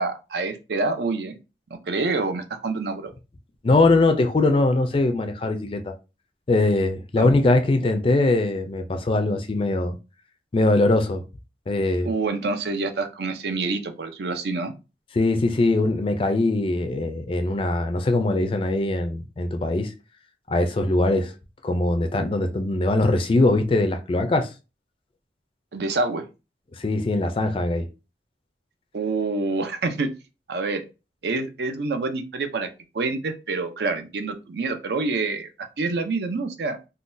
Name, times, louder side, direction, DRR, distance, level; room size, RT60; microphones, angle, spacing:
voice 1, 0.0-1.4 1.7-3.1 7.2-7.3 12.0-14.7 25.7-26.2 28.9-30.1 30.5-30.8 31.2-32.7 32.9-35.5 35.8-36.8, right 3 dB, 65° right, 0.5 m, -27 dB
voice 2, 3.6-5.9 6.5-10.0 10.5-11.2 11.7-12.1 15.1-19.9 20.5-21.3 21.6-24.5 26.8-27.9, left 2 dB, 30° left, 0.4 m, -21 dB
3.7 x 2.2 x 2.5 m
head